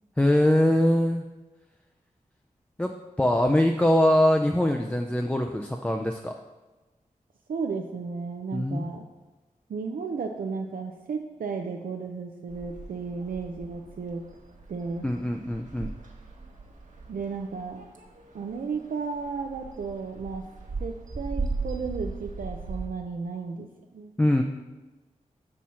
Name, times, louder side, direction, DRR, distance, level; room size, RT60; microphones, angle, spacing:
voice 1, 0.2-1.2 2.8-6.3 8.5-8.9 15.0-15.9 24.2-24.4, left 1 dB, 10° left, 3 dB, 0.4 m, -23 dB
voice 2, 7.5-9.1 9.7-14.2 14.7-15.1 17.1-17.8 18.3-20.4 20.8-24.1, right 5 dB, 85° right, 3 dB, 0.5 m, -34 dB
sound 1, 12.5-22.9, right 3 dB, 65° right, 1.2 m, -38 dB
6.2 x 4.3 x 5.6 m, 1.2 s
wide cardioid pair, 85°, 14 cm